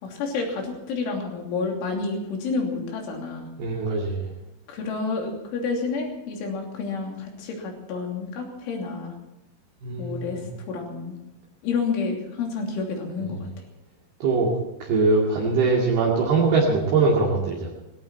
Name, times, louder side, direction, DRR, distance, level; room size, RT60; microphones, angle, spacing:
voice 1, 0.0-3.5 4.7-9.1 10.0-10.4 10.7-11.2 11.6-13.5, left 4 dB, 75° left, 1 dB, 5.4 m, -29 dB
voice 2, 3.6-4.3 9.8-10.4 14.2-14.5 14.8-17.7, right 4 dB, 60° right, -3 dB, 4.0 m, -22 dB
19.0 x 17.5 x 4.4 m, 0.97 s
omnidirectional pair, 5.6 m